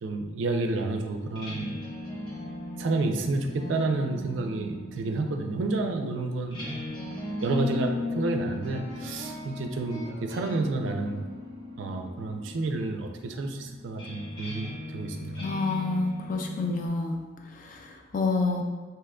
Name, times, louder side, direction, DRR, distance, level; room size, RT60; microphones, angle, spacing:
voice 1, 0.0-1.8 2.8-6.6 7.4-11.2 11.8-15.5, right 2 dB, 75° right, 5 dB, 0.4 m, -30 dB
sound 1, 1.2-16.9, left 2 dB, 25° left, 0.7 m, -38 dB
voice 2, 15.4-17.2 17.5-18.6, left 3 dB, 45° left, 2 dB, 0.4 m, -28 dB
2.8 x 2.2 x 3.5 m, 1.3 s
head